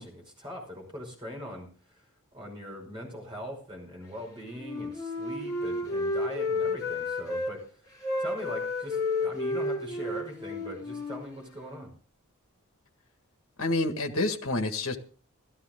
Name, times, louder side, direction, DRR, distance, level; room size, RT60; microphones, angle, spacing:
voice 1, 0.0-2.0 2.3-7.8 8.2-11.9, equal, 20° right, 0 dB, 5.6 m, -41 dB
Wind instrument woodwind instrument, 4.6-7.5 8.0-11.8, left 2 dB, 15° left, 7.2 m, -31 dB
voice 2, 13.6-15.0, left 2 dB, 65° left, 6 dB, 1.8 m, -28 dB
15.5 x 13.0 x 3.8 m, 0.40 s
head